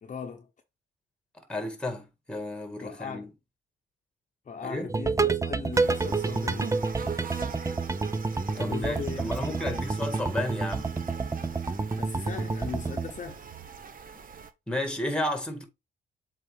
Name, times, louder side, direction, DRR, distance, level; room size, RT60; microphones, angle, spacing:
voice 1, 0.0-0.5 2.8-3.3 4.5-6.8 8.5-9.8 12.0-13.4, left 6 dB, 40° left, 0.9 m, -38 dB
voice 2, 1.3-3.3 4.6-4.9 8.6-10.9 14.7-15.7, left 1 dB, 5° left, 2.0 m, -32 dB
sound 1, 4.9-13.1, right 4 dB, 15° right, 0.6 m, -29 dB
sound 2, 5.7-14.5, right 6 dB, 45° right, 1.0 m, -43 dB
7.6 x 3.9 x 3.6 m
cardioid pair, 90°, 20 cm